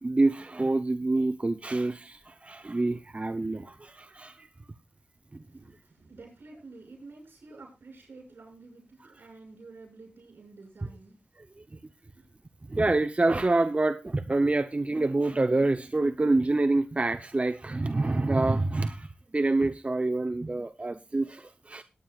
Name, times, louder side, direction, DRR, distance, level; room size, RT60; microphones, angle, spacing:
voice 1, 0.0-4.5 5.3-5.4 11.6-11.7 12.6-21.8, right 2 dB, 35° right, 0.8 m, -27 dB
voice 2, 5.5-11.2 12.1-12.3, right 3 dB, 80° right, 7.3 m, -50 dB
20.5 x 9.4 x 2.4 m
cardioid pair, 50°, 4 cm